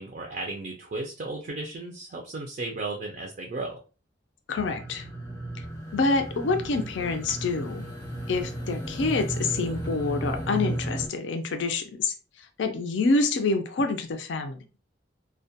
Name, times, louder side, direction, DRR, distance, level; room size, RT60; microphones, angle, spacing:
voice 1, 0.0-3.8, right 2 dB, 40° right, 1 dB, 0.4 m, -35 dB
voice 2, 4.5-5.1 5.9-7.9 8.3-12.1 12.6-14.6, left 3 dB, 70° left, 5 dB, 0.4 m, -27 dB
sound 1, 4.6-11.1, right 1 dB, 20° left, 0.6 m, -34 dB
2.2 x 2.1 x 2.7 m, 0.34 s
head